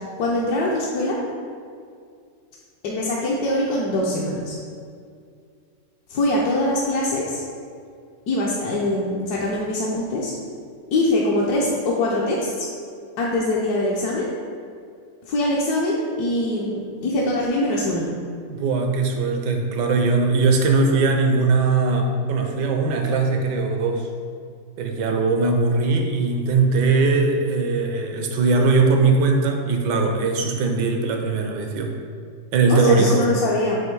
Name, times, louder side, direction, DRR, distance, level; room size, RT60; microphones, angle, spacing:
voice 1, 0.2-1.2 2.8-4.6 6.1-7.4 8.3-10.3 10.9-12.7 13.2-14.3 15.3-18.0 32.7-33.8, left 1 dB, 65° left, -5 dB, 1.1 m, -23 dB
voice 2, 18.5-24.1 24.8-31.9 32.5-33.2, right 3 dB, 75° right, 3 dB, 1.3 m, -20 dB
7.9 x 2.7 x 4.6 m, 2.2 s
omnidirectional pair, 2.0 m